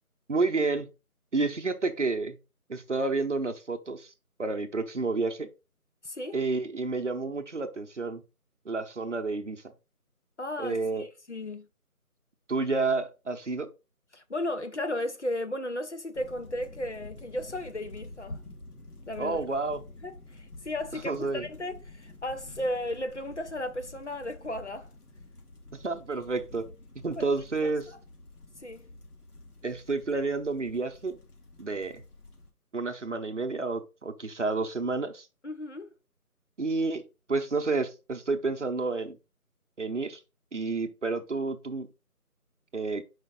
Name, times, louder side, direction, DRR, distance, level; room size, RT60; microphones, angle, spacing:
voice 1, 0.3-0.9 1.3-2.4 2.7-4.1 4.4-5.5 6.3-8.2 8.7-9.6 10.6-11.0 12.5-13.7 19.2-19.8 21.0-21.4 25.8-26.6 27.0-27.8 29.6-31.2 31.6-32.0 32.7-35.3 36.6-39.2 39.8-40.2 40.5-41.9 42.7-43.0, right 3 dB, 50° right, 0.8 m, -30 dB
voice 2, 6.0-6.4 10.4-11.7 14.1-18.4 19.1-19.4 20.0-24.9 27.1-27.3 27.6-27.7 28.6-28.8 35.4-35.9, left 1 dB, 50° left, 0.7 m, -35 dB
sound 1, 16.1-32.5, left 2 dB, 85° left, 3.1 m, -48 dB
5.3 x 5.1 x 3.8 m
figure-of-eight pair, 170°, 45 cm